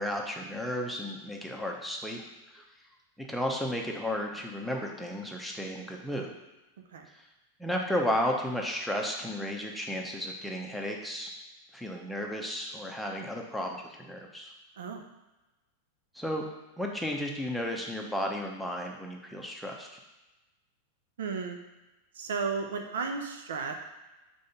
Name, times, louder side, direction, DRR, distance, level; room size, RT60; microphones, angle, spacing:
voice 1, 0.0-2.6 3.2-6.4 7.1-7.2 7.6-11.3 11.7-14.5 16.1-16.4 16.8-20.0, equal, ahead, 0 dB, 0.9 m, -33 dB
voice 2, 21.2-21.6 22.2-23.7, right 5 dB, 60° right, 4 dB, 0.6 m, -33 dB
5.3 x 3.4 x 5.3 m, 1.1 s
figure-of-eight pair, 90°, 0 cm